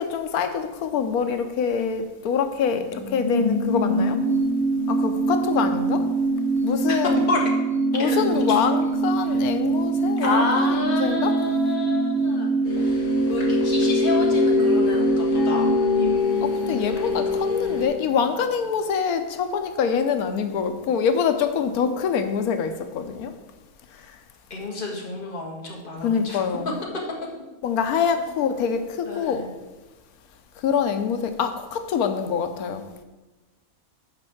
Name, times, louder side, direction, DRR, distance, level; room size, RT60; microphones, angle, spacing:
voice 1, 0.0-4.2 4.9-6.1 6.6-7.2 7.9-11.3 16.4-23.3 26.0-26.7 27.6-29.4 30.6-32.9, left 6 dB, 90° left, 1.2 m, -25 dB
sound 1, 2.6-17.9 18.1-18.2, right 2 dB, 20° left, 2.8 m, -24 dB
voice 2, 8.0-8.6 10.2-16.4 16.9-17.4 24.5-26.4 29.1-29.5, left 3 dB, 35° left, 1.8 m, -30 dB
sound 2, 12.6-17.9, left 4 dB, 65° left, 2.4 m, -24 dB
6.6 x 5.3 x 7.1 m
omnidirectional pair, 1.5 m